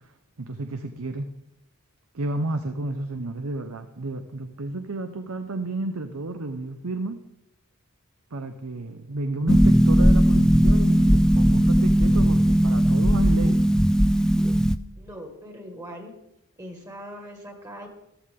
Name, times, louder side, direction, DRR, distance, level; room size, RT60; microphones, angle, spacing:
voice 1, 0.4-1.3 2.1-7.2 8.3-13.6, right 2 dB, 70° right, 8 dB, 0.8 m, -31 dB
Harp, 9.5-14.8, equal, 5° left, 0.3 m, -18 dB
voice 2, 15.0-16.1 16.6-17.9, equal, 15° right, 3 dB, 1.8 m, -40 dB
14.0 x 13.5 x 3.7 m, 0.85 s
head